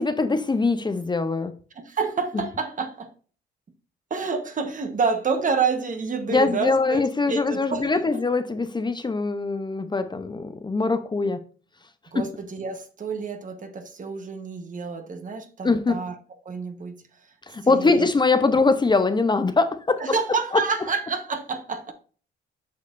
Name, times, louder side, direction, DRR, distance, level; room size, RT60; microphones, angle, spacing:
voice 1, 0.0-1.5 2.3-2.4 6.3-11.4 12.1-12.2 15.6-16.0 17.5-20.2 20.5-20.6, left 3 dB, 20° left, 0.7 m, -22 dB
voice 2, 1.8-3.1 4.1-8.0 12.1-16.1 16.4-17.0 17.6-18.1 20.0-21.9, right 5 dB, 40° right, 1.2 m, -28 dB
8.4 x 6.3 x 2.6 m
cardioid pair, 90°, 20 cm